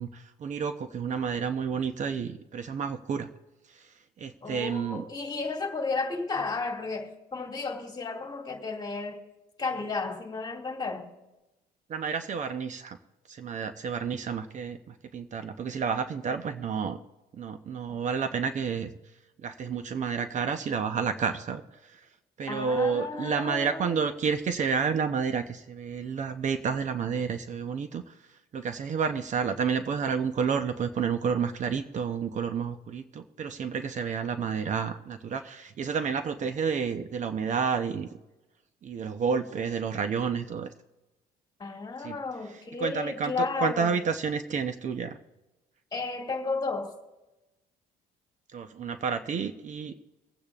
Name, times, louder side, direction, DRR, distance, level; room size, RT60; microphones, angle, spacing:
voice 1, 0.0-3.3 4.2-5.0 11.9-13.0 13.3-17.0 17.4-18.9 19.4-21.6 22.4-28.0 28.5-38.1 38.8-40.7 42.0-42.2 42.8-45.2 48.5-49.9, right 6 dB, 45° right, 9 dB, 0.8 m, -30 dB
voice 2, 4.4-9.2 9.6-11.1 22.5-23.9 41.6-43.9 45.9-47.0, left 4 dB, 25° left, 1 dB, 2.2 m, -33 dB
25.0 x 8.6 x 2.4 m, 1.0 s
cardioid pair, 110°, 17 cm